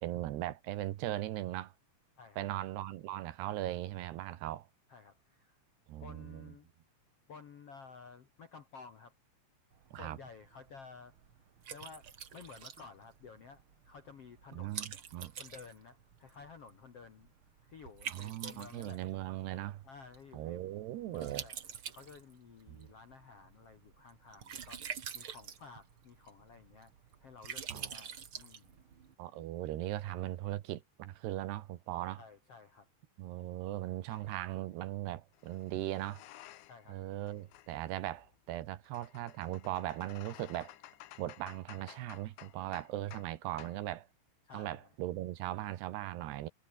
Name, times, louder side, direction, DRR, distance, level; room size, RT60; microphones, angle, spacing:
voice 1, 0.0-1.7 2.4-4.7 5.9-6.5 9.9-10.2 14.5-15.3 18.1-19.8 20.3-21.4 22.7-22.9 27.7-27.9 29.2-32.2 33.2-36.2 36.9-40.7 41.2-44.1 44.5-46.5, right 14 dB, 70° right, 3.1 m, -39 dB
voice 2, 2.2-2.5 4.9-5.6 5.9-6.7 7.3-9.1 9.9-11.1 11.7-12.1 12.3-14.9 15.4-17.3 17.6-19.0 19.8-20.6 21.1-21.6 21.9-26.9 27.2-28.7 32.2-32.9 36.7-37.0 44.4-44.9, left 5 dB, 65° left, 1.5 m, -53 dB
Liquid, 9.7-29.1, right 7 dB, 50° right, 1.5 m, -48 dB
sound 1, 34.1-34.3 35.3-36.9 37.2-43.3 43.6-43.8, left 15 dB, 90° left, 3.8 m, -55 dB
omnidirectional pair, 5.3 m